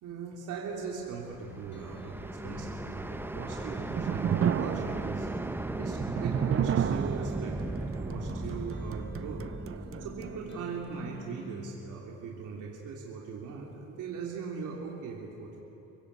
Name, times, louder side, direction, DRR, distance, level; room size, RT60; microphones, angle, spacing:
voice 1, 0.0-5.3 5.8-9.5 10.0-15.6, right 5 dB, 85° right, -2 dB, 3.4 m, -40 dB
sound 1, 1.0-11.0, right 2 dB, 5° right, 0.7 m, -37 dB
sound 2, 1.5-11.8, left 1 dB, 40° left, 3.7 m, -47 dB
sound 3, 3.5-10.6, right 9 dB, 45° right, 0.7 m, -33 dB
30.0 x 16.5 x 8.3 m, 3.0 s
cardioid pair, 90°, 30 cm